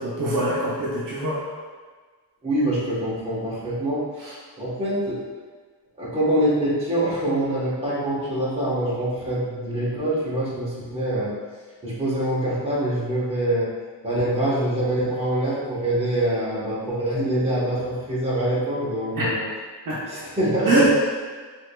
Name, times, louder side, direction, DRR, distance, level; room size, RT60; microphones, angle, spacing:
voice 1, 0.0-1.4 4.2-4.3 19.2-19.3 19.9-20.0 20.7-20.9, right 1 dB, 50° right, -7 dB, 0.8 m, -23 dB
voice 2, 2.4-4.2 4.6-5.2 6.0-11.3 11.8-13.7 14.0-19.4 20.1-20.9, right 1 dB, 15° right, -9 dB, 1.0 m, -25 dB
4.6 x 2.7 x 2.2 m, 1.5 s
wide cardioid pair, 140°, 41 cm